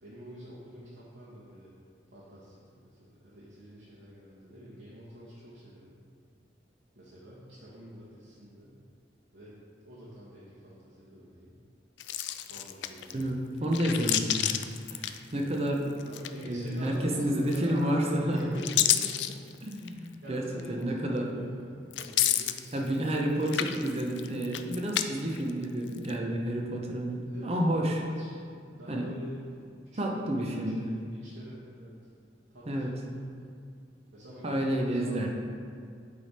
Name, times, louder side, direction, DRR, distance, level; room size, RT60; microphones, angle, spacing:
voice 1, 0.0-1.7 2.1-6.0 6.9-8.8 9.3-11.6 12.5-13.5 16.1-19.4 19.6-19.8 20.2-22.7 27.3-28.5 28.8-29.5 29.9-30.5 30.8-31.9 32.5-33.2 34.1-35.3, equal, 80° right, -9 dB, 1.1 m, -46 dB
sound 1, 12.0-13.2 13.6-15.7 16.0-16.7 17.5-18.0 18.4-20.0 20.6-20.7 21.9-23.2 23.4-25.0 25.4-26.1, left 12 dB, 75° left, 0.3 m, -30 dB
voice 2, 13.1-14.5 14.9-15.9 16.4-18.5 19.6-21.4 22.7-28.0 28.9-29.1 30.0-30.9 32.7-32.9 34.4-35.3, right 1 dB, 35° right, 0 dB, 0.7 m, -30 dB
8.3 x 3.4 x 4.2 m, 2.3 s
head